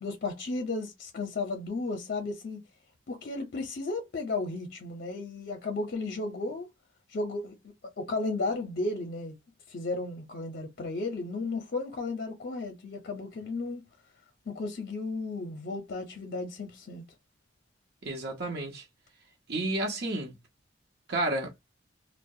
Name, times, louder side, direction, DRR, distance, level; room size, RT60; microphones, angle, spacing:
voice 1, 0.0-2.6 3.1-6.7 7.1-7.6 8.0-9.4 9.7-13.8 14.5-17.0, left 3 dB, 55° left, 0.6 m, -34 dB
voice 2, 18.0-18.8 19.5-20.4 21.1-21.5, right 2 dB, 60° right, 0.7 m, -31 dB
2.3 x 2.0 x 2.6 m
head